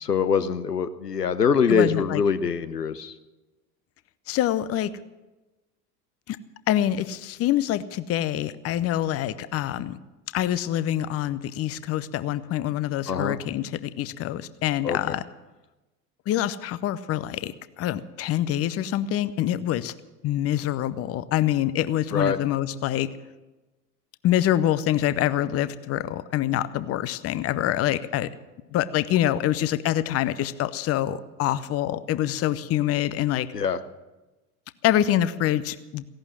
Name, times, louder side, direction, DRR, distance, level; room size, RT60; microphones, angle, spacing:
voice 1, 0.0-3.1 13.1-13.4 14.8-15.1 22.1-22.4 33.5-33.8, left 6 dB, 85° left, 12 dB, 0.9 m, -24 dB
voice 2, 1.7-2.2 4.3-4.9 6.3-6.4 6.7-10.0 10.3-15.2 16.3-19.9 20.2-23.1 24.2-28.3 28.7-33.5 34.8-36.0, left 12 dB, 30° left, 15 dB, 0.7 m, -25 dB
16.5 x 11.5 x 7.4 m, 1.1 s
figure-of-eight pair, 70°, 46 cm